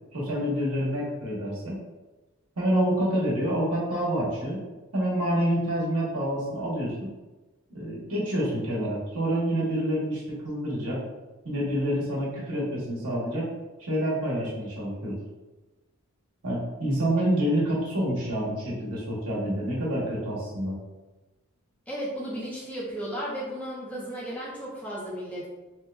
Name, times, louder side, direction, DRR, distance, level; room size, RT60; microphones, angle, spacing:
voice 1, 0.1-1.8 2.6-4.6 4.9-7.1 7.7-11.0 11.4-13.5 13.8-15.2 16.4-20.8, equal, 90° right, -5 dB, 1.2 m, -27 dB
voice 2, 21.9-25.5, equal, 5° left, -7 dB, 0.7 m, -34 dB
3.1 x 2.3 x 3.2 m, 1.1 s
head